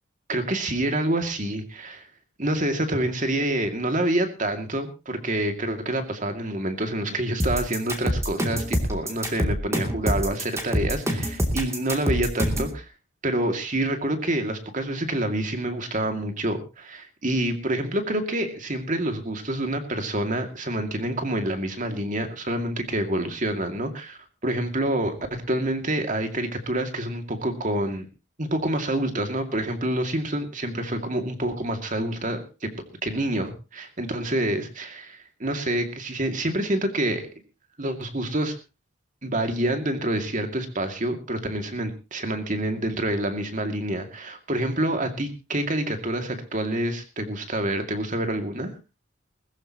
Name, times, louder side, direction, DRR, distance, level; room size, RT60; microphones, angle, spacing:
voice 1, 0.3-2.1 2.4-12.9 13.2-28.1 28.4-32.7 33.0-37.3 37.8-38.6 39.2-48.7, right 1 dB, 40° right, 6 dB, 2.4 m, -27 dB
sound 1, 7.4-12.7, equal, 15° right, 2.8 m, -25 dB
21.0 x 14.0 x 3.0 m, 0.30 s
head